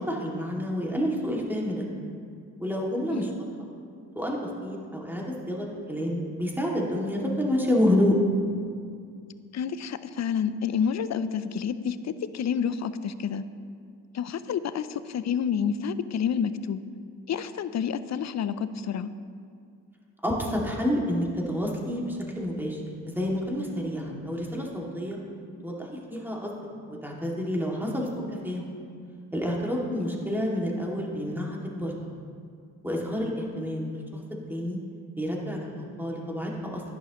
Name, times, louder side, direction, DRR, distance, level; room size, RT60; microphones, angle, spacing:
voice 1, 0.0-1.9 2.6-3.3 4.2-8.2 20.2-22.8 23.0-25.2 25.6-26.5 26.9-28.6 29.3-31.9 32.8-34.0 34.5-34.8 35.2-36.8, left 1 dB, 5° right, -2 dB, 2.4 m, -29 dB
voice 2, 9.5-13.4 14.1-16.8 17.3-19.1 24.1-24.4 30.2-30.3, left 7 dB, 40° left, 14 dB, 0.6 m, -29 dB
11.0 x 10.5 x 3.1 m, 2.3 s
hypercardioid pair, 45°, 43 cm